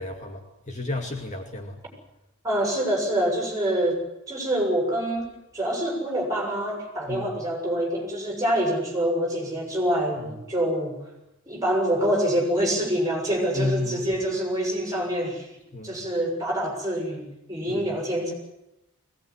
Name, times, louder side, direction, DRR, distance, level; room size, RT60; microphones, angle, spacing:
voice 1, 0.0-1.8 7.1-7.3 13.5-14.0 15.7-16.0 17.7-17.8, left 2 dB, 35° left, 3 dB, 2.4 m, -31 dB
voice 2, 2.4-4.0 4.3-11.0 11.5-15.5 15.8-18.3, right 1 dB, 15° right, 0 dB, 7.5 m, -26 dB
22.0 x 19.0 x 9.9 m, 0.92 s
head